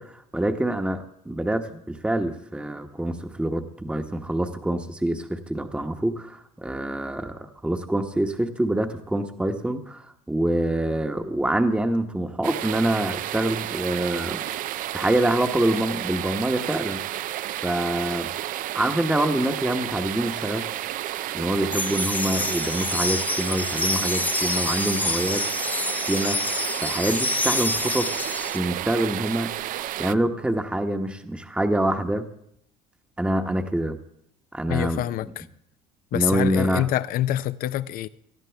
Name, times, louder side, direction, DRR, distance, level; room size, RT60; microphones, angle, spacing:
voice 1, 0.0-14.5 14.9-17.0 17.6-18.3 18.7-20.7 21.3-25.4 26.1-28.2 28.5-29.5 30.0-32.3 33.2-34.0 34.5-35.3 36.1-36.9, right 1 dB, 5° right, 1.1 m, -26 dB
sound 1, 12.4-30.2, right 13 dB, 55° right, 0.4 m, -31 dB
sound 2, 21.7-28.6, left 2 dB, 10° left, 0.5 m, -27 dB
voice 2, 34.7-35.5 36.1-38.1, left 13 dB, 60° left, 0.6 m, -26 dB
19.0 x 13.0 x 3.4 m
supercardioid pair, 80°, 17 cm